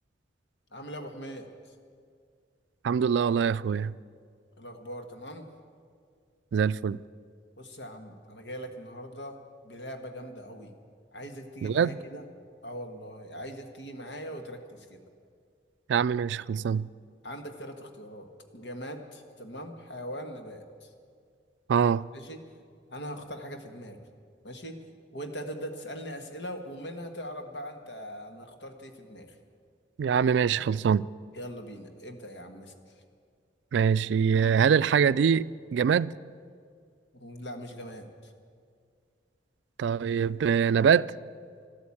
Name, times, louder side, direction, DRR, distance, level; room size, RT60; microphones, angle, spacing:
voice 1, 0.7-1.5 4.6-5.5 7.6-9.4 9.6-10.7 11.1-12.2 12.6-15.0 17.2-20.9 22.1-22.4 22.9-24.0 24.4-24.8 25.1-29.4 31.3-32.7 37.1-38.3, equal, 75° left, 1.5 m, -41 dB
voice 2, 2.8-3.9 6.5-7.0 11.6-11.9 15.9-16.9 21.7-22.1 30.0-31.1 33.7-36.1 39.8-41.1, right 7 dB, 80° right, 0.3 m, -24 dB
13.0 x 12.5 x 8.6 m
head